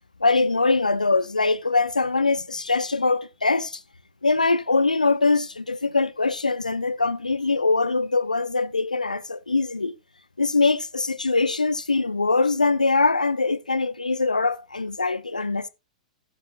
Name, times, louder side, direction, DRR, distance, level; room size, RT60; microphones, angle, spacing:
voice 1, 0.2-3.8 4.2-9.9 10.4-15.7, left 3 dB, 85° left, 0.7 m, -22 dB
15.5 x 6.9 x 2.4 m
figure-of-eight pair, 100°, 4 cm